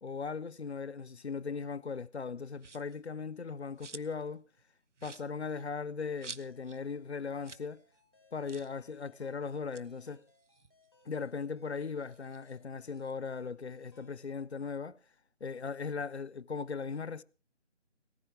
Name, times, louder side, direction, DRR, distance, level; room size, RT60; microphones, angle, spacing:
voice 1, 0.0-4.4 5.0-7.8 8.3-10.2 11.0-15.0 15.4-17.2, left 5 dB, 65° left, 0.7 m, -38 dB
sound 1, 2.6-3.0 3.4-4.3 4.6-4.7 5.0-6.8 7.1-7.2 7.4-7.7 8.0-8.1 8.4-8.8 9.5-11.3 11.7-13.1, right 4 dB, 75° right, 0.9 m, -51 dB
sound 2, 6.0-14.3, left 3 dB, 20° left, 1.4 m, -67 dB
19.0 x 11.0 x 4.7 m
figure-of-eight pair, 165°, 36 cm